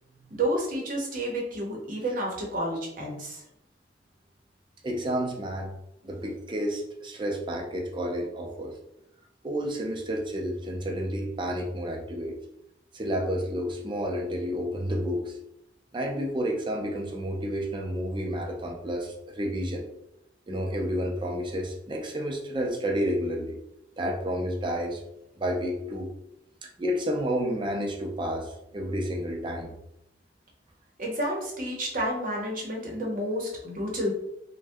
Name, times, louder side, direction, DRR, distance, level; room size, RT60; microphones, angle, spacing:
voice 1, 0.3-3.4 31.0-34.1, right 1 dB, 50° right, -1 dB, 0.8 m, -30 dB
voice 2, 4.8-5.7 6.0-8.7 9.4-12.3 12.9-15.3 15.9-19.8 20.5-23.6 24.0-25.0 25.4-26.1 26.6-29.7, equal, 25° right, 2 dB, 0.5 m, -30 dB
2.6 x 2.2 x 3.4 m, 0.82 s
head